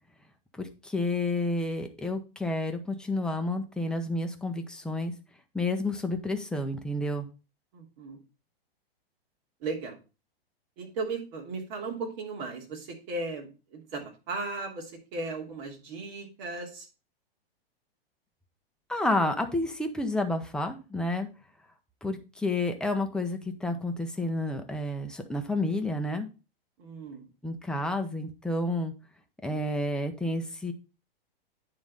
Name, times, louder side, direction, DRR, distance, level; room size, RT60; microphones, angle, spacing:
voice 1, 0.6-5.1 5.5-7.3 18.9-21.3 22.0-26.3 27.4-28.9 29.4-30.7, left 2 dB, 5° left, 5 dB, 0.9 m, -30 dB
voice 2, 7.7-8.2 9.6-10.0 10.8-16.8 26.8-27.2, right 3 dB, 45° right, 1 dB, 2.9 m, -36 dB
9.4 x 4.0 x 5.4 m, 0.31 s
hypercardioid pair, 120°, 30 cm